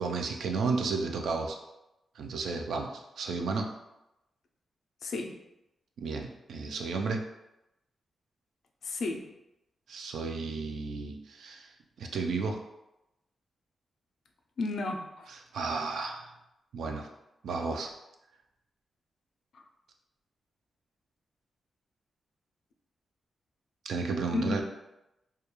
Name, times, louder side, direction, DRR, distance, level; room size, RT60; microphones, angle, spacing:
voice 1, 0.0-1.6 2.2-3.7 6.0-7.2 9.9-11.7 12.0-12.6 15.3-16.3 16.7-17.1 17.4-17.9 23.8-24.6, right 4 dB, 90° right, 3 dB, 0.3 m, -33 dB
voice 2, 5.0-5.4 8.8-9.3 14.6-15.3 19.5-19.6 24.3-24.6, left 3 dB, 70° left, 3 dB, 0.3 m, -33 dB
2.2 x 2.2 x 2.9 m, 0.91 s
wide cardioid pair, 135°, 0 cm